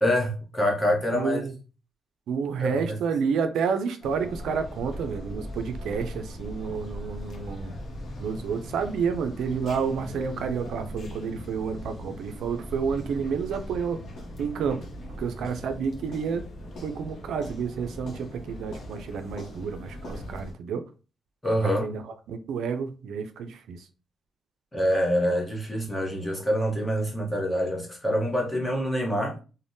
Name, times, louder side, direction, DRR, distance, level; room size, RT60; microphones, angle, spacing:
voice 1, 0.0-1.5 2.6-2.9 21.4-21.9 24.7-29.4, equal, 10° left, 0.8 m, -26 dB
voice 2, 1.1-1.5 2.3-7.7 8.2-14.0 14.4-14.8 15.2-16.4 16.8-20.9 21.6-22.0 22.3-23.8, right 6 dB, 75° right, 0.3 m, -30 dB
sound 1, 4.0-20.5, equal, 55° left, 0.8 m, -39 dB
3.3 x 2.1 x 2.6 m
cardioid pair, 145°, 0 cm